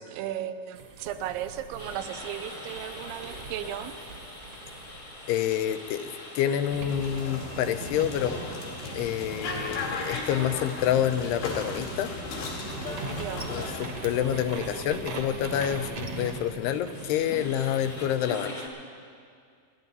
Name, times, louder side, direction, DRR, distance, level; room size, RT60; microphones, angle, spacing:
voice 1, 0.0-4.0 13.1-13.5, right 11 dB, 85° right, 10 dB, 2.6 m, -35 dB
sound 1, 0.7-6.1 6.6-18.3, right 3 dB, 60° right, 1.5 m, -41 dB
sound 2, 1.8-18.7, left 1 dB, 35° left, 1.3 m, -43 dB
voice 2, 5.3-6.1 6.4-8.4 8.9-12.1 13.5-18.6, left 10 dB, 90° left, 10 dB, 2.7 m, -28 dB
sound 3, 6.9-13.9, left 3 dB, 75° left, 4.1 m, -36 dB
28.5 x 10.5 x 4.1 m, 2.2 s
omnidirectional pair, 4.6 m